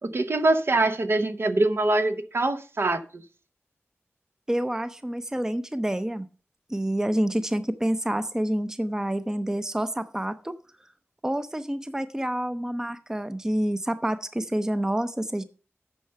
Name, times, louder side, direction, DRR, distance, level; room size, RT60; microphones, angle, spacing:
voice 1, 0.0-3.0, right 2 dB, 55° right, 9 dB, 0.9 m, -23 dB
voice 2, 4.5-6.3 6.7-10.6 11.2-15.4, right 1 dB, 10° right, 11 dB, 0.6 m, -28 dB
9.0 x 5.7 x 6.5 m, 0.37 s
wide cardioid pair, 90°, 5 cm